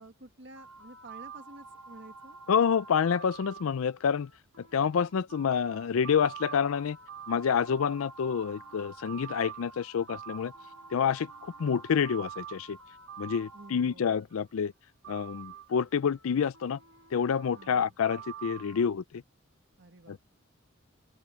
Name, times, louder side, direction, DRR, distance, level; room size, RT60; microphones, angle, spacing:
voice 1, 0.0-2.4 13.5-14.2 17.5-17.9 19.8-20.2, right 2 dB, 55° right, 1.8 m, -51 dB
sound 1, 0.5-14.4 15.0-18.9, right 7 dB, 80° right, 1.8 m, -47 dB
voice 2, 2.5-4.3 4.7-7.0 7.3-10.5 10.9-12.8 13.2-14.7 15.1-16.8 17.1-19.2 20.1-20.2, left 7 dB, 75° left, 0.4 m, -28 dB
open air
head